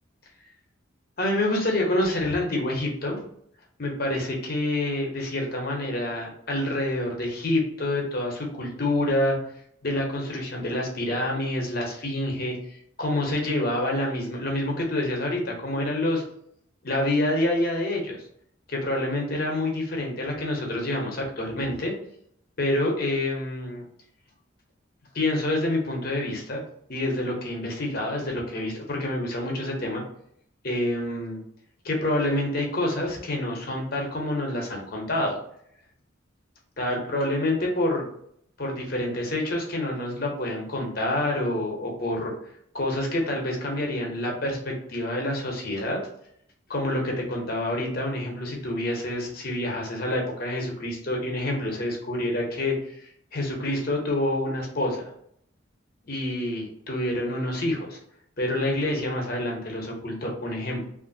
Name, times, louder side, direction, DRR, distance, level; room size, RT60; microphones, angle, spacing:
voice 1, 1.2-3.2 3.8-9.4 9.8-16.2 16.8-18.2 18.7-21.9 22.6-23.8 25.1-26.6 26.9-30.0 30.6-31.4 31.8-35.3 36.8-38.0 38.6-42.3 42.7-46.0 46.7-55.1 56.1-58.0 58.4-60.8, left 1 dB, 50° left, 0 dB, 0.8 m, -27 dB
3.2 x 2.5 x 2.6 m, 0.69 s
head